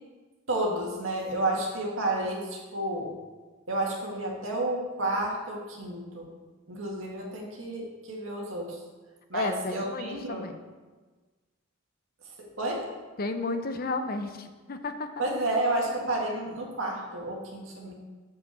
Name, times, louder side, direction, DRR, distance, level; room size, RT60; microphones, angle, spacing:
voice 1, 0.5-3.1 3.7-6.3 6.7-8.8 9.3-10.4 12.4-12.9 15.2-17.9, right 1 dB, 80° right, -1 dB, 1.9 m, -31 dB
voice 2, 9.3-10.6 13.2-15.1, left 3 dB, 50° left, 8 dB, 0.7 m, -32 dB
7.0 x 5.6 x 6.9 m, 1.3 s
head